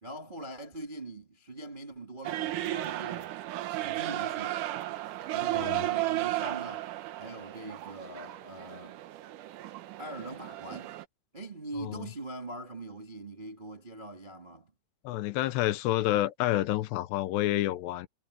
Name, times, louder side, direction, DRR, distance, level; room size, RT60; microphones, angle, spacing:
voice 1, 0.0-3.3 3.8-4.6 5.3-6.9 7.2-9.0 10.0-11.0 11.3-14.7, right 2 dB, 40° right, 0.7 m, -42 dB
sound 1, 2.2-11.0, right 16 dB, 80° right, 1.8 m, -34 dB
voice 2, 5.5-5.8 11.8-12.1 15.0-18.1, left 15 dB, 85° left, 3.0 m, -29 dB
omnidirectional pair, 4.9 m